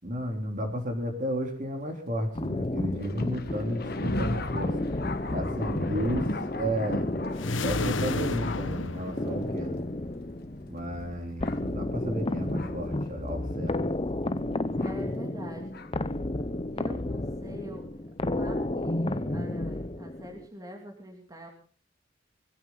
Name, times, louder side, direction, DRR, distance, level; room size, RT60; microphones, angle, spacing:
voice 1, 0.0-4.8 5.3-6.3 6.6-7.1 7.6-9.8 10.7-13.8, equal, 45° right, 3 dB, 3.5 m, -32 dB
sound 1, 2.4-20.5, left 1 dB, 30° left, 0.8 m, -32 dB
Thunder, 3.0-12.9 13.7-13.8 14.8-15.0 15.7-15.9, left 2 dB, 55° left, 1.5 m, -37 dB
sound 2, 7.3-9.9, left 3 dB, 85° left, 1.2 m, -31 dB
voice 2, 14.7-15.9 16.7-18.1 18.3-21.5, equal, 20° right, 1 dB, 2.8 m, -44 dB
21.0 x 15.5 x 4.0 m, 0.39 s
head